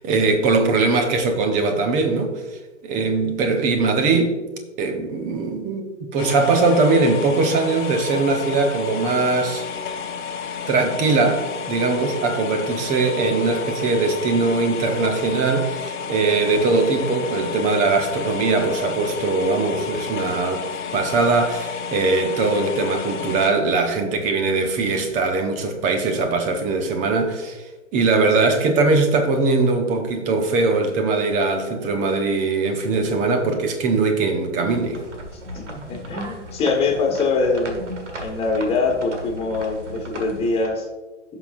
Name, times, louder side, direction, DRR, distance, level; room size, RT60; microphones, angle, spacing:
voice 1, 0.0-2.4 2.8-4.4 4.8-9.6 10.7-27.6 27.9-35.0, right 3 dB, 20° right, 0.9 m, -21 dB
sound 1, 6.2-23.5, left 6 dB, 40° left, 0.9 m, -31 dB
sound 2, 34.7-40.7, equal, 70° right, 1.8 m, -36 dB
voice 2, 35.5-37.8 38.2-40.8, left 3 dB, 15° left, 1.6 m, -23 dB
16.5 x 5.8 x 2.5 m
figure-of-eight pair, 120°, 37 cm